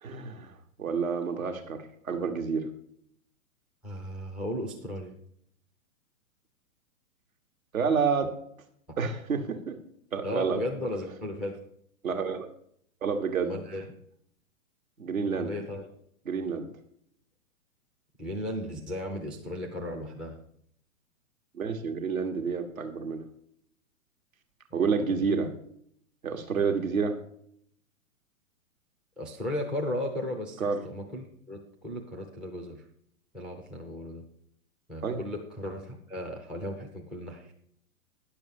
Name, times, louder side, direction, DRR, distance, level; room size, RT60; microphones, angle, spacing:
voice 1, 0.0-2.7 7.7-8.3 9.0-9.7 10.1-10.6 12.0-12.5 13.0-13.6 15.0-15.5 16.2-16.7 21.5-23.2 24.7-25.5 26.2-27.1 30.6-30.9 35.0-35.2, right 5 dB, 75° right, 6 dB, 1.4 m, -29 dB
voice 2, 3.8-5.1 10.2-11.6 13.4-13.8 15.3-15.9 18.2-20.4 24.7-24.8 29.2-32.8 33.3-34.2 34.9-37.5, left 1 dB, ahead, 4 dB, 0.3 m, -35 dB
10.0 x 6.9 x 5.2 m, 0.67 s
figure-of-eight pair, 115°, 41 cm